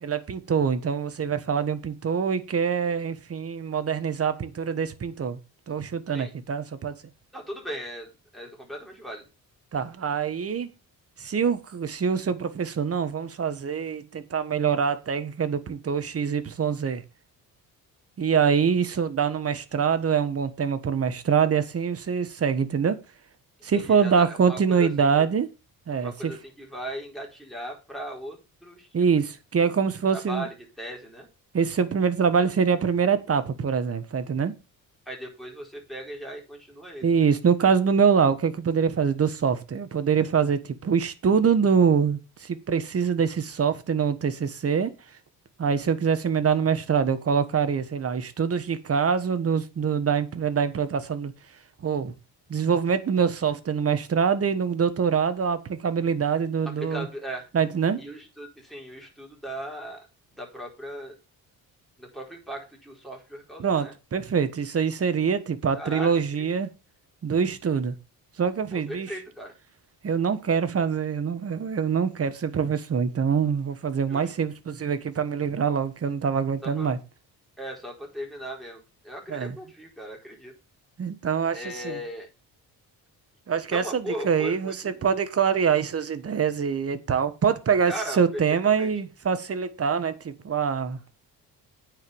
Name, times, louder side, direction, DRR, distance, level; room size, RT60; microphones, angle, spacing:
voice 1, 0.0-5.4 5.7-7.0 9.7-10.7 11.2-17.0 18.2-23.0 23.6-25.5 25.9-26.3 28.9-30.5 31.5-34.5 37.0-44.9 45.6-51.3 51.8-52.1 52.5-57.1 57.5-58.0 63.6-66.7 67.2-67.9 68.4-69.1 70.0-77.0 79.3-79.5 81.0-82.0 83.5-84.7 85.0-91.0, right 6 dB, 40° right, 1.3 m, -24 dB
voice 2, 7.3-9.2 23.7-25.3 25.9-29.0 29.2-29.3 30.1-31.3 35.0-37.2 56.8-57.5 58.0-60.1 60.3-61.1 62.0-63.9 65.7-66.5 68.7-69.5 74.1-74.3 76.6-76.9 77.6-80.5 81.5-82.3 83.7-85.0 87.8-88.9, equal, ahead, 4.7 m, -38 dB
9.3 x 5.2 x 7.1 m
cardioid pair, 105°, 37 cm